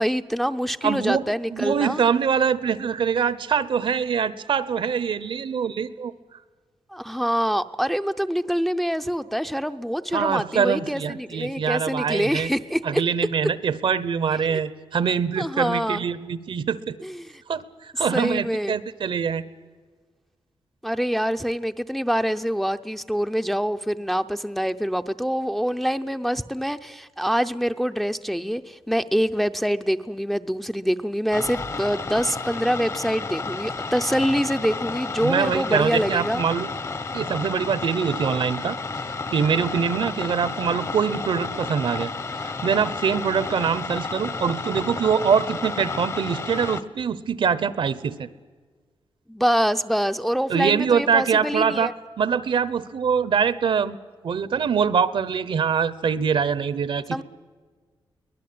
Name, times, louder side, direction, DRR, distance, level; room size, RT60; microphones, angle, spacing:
voice 1, 0.0-2.0 6.9-13.0 14.4-14.6 15.4-16.0 17.0-17.3 18.1-18.8 20.8-36.4 49.3-51.9 57.1-57.2, equal, ahead, 8 dB, 0.6 m, -25 dB
voice 2, 0.8-1.2 1.5-6.1 10.1-12.5 12.8-17.0 17.5-19.4 35.2-36.7 37.1-38.8 39.3-42.1 42.4-48.3 50.5-51.9 52.2-54.0 54.2-57.2, right 6 dB, 65° right, 17 dB, 1.0 m, -24 dB
sound 1, 31.3-46.8, left 4 dB, 35° left, 1.1 m, -31 dB
23.0 x 19.0 x 8.6 m, 1.5 s
wide cardioid pair, 145°, 9 cm